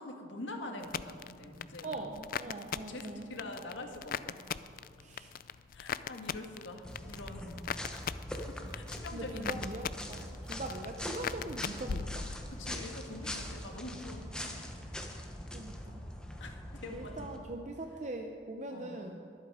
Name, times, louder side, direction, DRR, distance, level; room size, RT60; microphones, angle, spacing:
voice 1, 0.0-2.1 2.7-4.4 5.7-7.6 7.9-8.0 8.5-9.6 12.5-14.8 16.4-17.2 18.7-19.2, left 2 dB, 80° left, 3 dB, 1.7 m, -45 dB
sound 1, 0.8-12.7 13.0-13.6, left 7 dB, 50° left, 0.3 m, -41 dB
voice 2, 1.8-3.3 5.0-5.3 9.1-12.3 15.5-16.0 16.8-19.2, right 2 dB, 40° right, 3 dB, 0.7 m, -42 dB
sound 2, 6.8-17.4, left 1 dB, 5° left, 1.0 m, -42 dB
23.0 x 8.3 x 4.9 m, 2.4 s
head